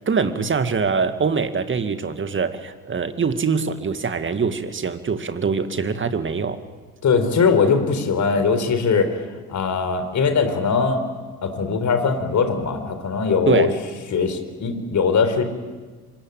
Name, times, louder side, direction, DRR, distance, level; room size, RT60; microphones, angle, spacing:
voice 1, 0.1-6.6 13.5-13.7, right 5 dB, 25° right, 9 dB, 2.1 m, -23 dB
voice 2, 7.0-9.2 9.5-11.0 11.4-13.7 14.1-15.4, left 5 dB, 40° left, 9 dB, 4.3 m, -20 dB
25.5 x 22.0 x 9.2 m, 1.4 s
figure-of-eight pair, 55°, 45 cm